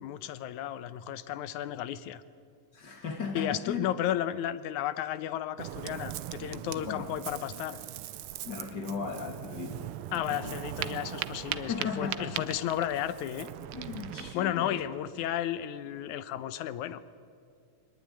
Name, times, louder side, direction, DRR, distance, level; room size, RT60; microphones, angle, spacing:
voice 1, 0.0-2.2 3.3-7.8 10.1-13.5 14.3-17.0, left 11 dB, 80° left, 14 dB, 2.2 m, -33 dB
voice 2, 2.7-3.8 6.8-7.1 8.4-9.9 10.1-10.6 11.7-12.4 13.7-14.8, left 5 dB, 35° left, 4 dB, 2.7 m, -36 dB
Ocean, 5.6-14.3, right 12 dB, 85° right, 1.2 m, -39 dB
22.5 x 19.5 x 9.9 m, 2.4 s
omnidirectional pair, 3.5 m